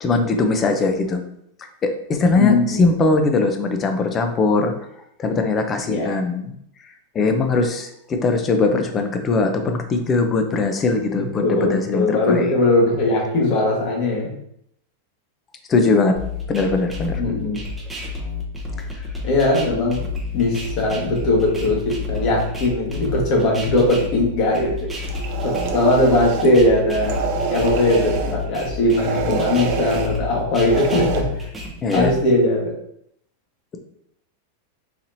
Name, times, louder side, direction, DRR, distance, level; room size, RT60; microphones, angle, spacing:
voice 1, 0.0-1.2 1.8-4.7 5.2-6.5 7.1-12.6 15.7-16.2 16.5-17.2 31.8-32.1, left 3 dB, 25° left, 6 dB, 0.5 m, -20 dB
voice 2, 2.4-2.8 5.9-6.2 11.1-14.3 17.2-17.6 19.2-20.0 20.3-24.9 25.4-27.2 27.5-31.5 31.9-32.7, left 2 dB, 45° left, -1 dB, 1.4 m, -20 dB
sound 1, 16.2-32.2, left 3 dB, 5° right, 0.8 m, -30 dB
sound 2, 25.0-26.5 27.0-28.4 28.9-30.1 30.7-31.2, right 6 dB, 55° right, 0.5 m, -26 dB
4.1 x 2.9 x 2.7 m, 0.72 s
supercardioid pair, 130°, 0 cm